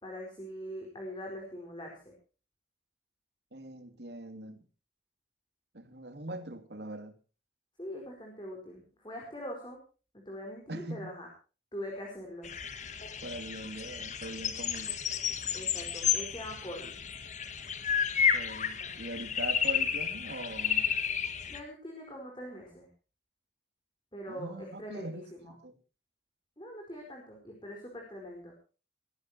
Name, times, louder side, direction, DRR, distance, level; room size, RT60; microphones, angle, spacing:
voice 1, 0.0-2.0 7.8-9.8 10.1-11.3 11.7-12.5 15.5-17.0 21.5-22.9 24.1-25.6 26.6-28.5, equal, 25° left, 4.8 m, -42 dB
voice 2, 3.5-4.6 5.7-7.1 10.7-11.1 13.2-15.0 18.3-20.9 24.3-25.3 25.6-25.7, right 1 dB, 70° right, 2.8 m, -42 dB
sound 1, 12.4-21.6, left 8 dB, 40° left, 1.7 m, -32 dB
21.5 x 16.5 x 2.9 m
head